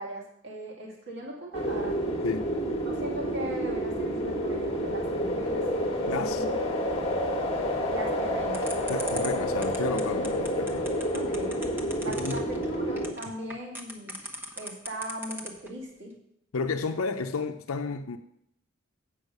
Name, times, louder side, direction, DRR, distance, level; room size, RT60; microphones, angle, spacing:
voice 1, 0.0-2.0 2.8-5.6 6.0-6.6 6.9-7.0 7.9-9.2 11.1-11.6 12.0-14.2 14.5-16.1, right 1 dB, 55° right, 2.1 m, -39 dB
sound 1, 1.5-13.1, equal, 30° left, 1.3 m, -29 dB
voice 2, 6.1-6.4 8.9-10.9 12.2-12.4 16.5-18.2, left 4 dB, 90° left, 0.6 m, -31 dB
sound 2, 8.5-15.7, equal, 10° right, 0.9 m, -38 dB
8.1 x 5.6 x 6.6 m
head